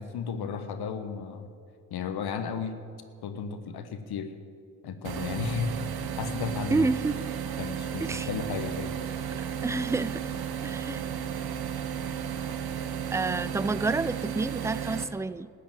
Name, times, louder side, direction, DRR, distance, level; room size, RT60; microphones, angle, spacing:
voice 1, 0.0-1.5 1.9-2.8 3.2-4.3 4.8-5.7 6.2-6.9 7.6-8.9, left 6 dB, 60° left, 8 dB, 1.2 m, -34 dB
sound 1, 5.0-15.0, right 8 dB, 60° right, 1.2 m, -34 dB
voice 2, 6.7-7.2 8.0-8.3 9.6-10.2 10.6-11.0 13.1-15.5, right 3 dB, 5° right, 18 dB, 0.4 m, -29 dB
13.5 x 8.4 x 9.1 m, 2.3 s
hypercardioid pair, 50°, 42 cm